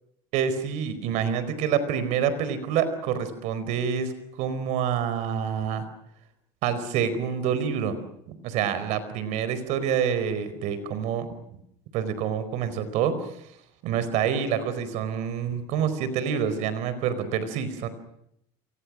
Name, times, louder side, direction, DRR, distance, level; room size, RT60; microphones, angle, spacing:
voice 1, 0.3-5.8 6.6-8.0 8.4-11.3 11.9-13.1 13.8-17.9, right 8 dB, 65° right, 13 dB, 4.6 m, -27 dB
30.0 x 23.5 x 6.3 m, 0.76 s
supercardioid pair, 120°, 13 cm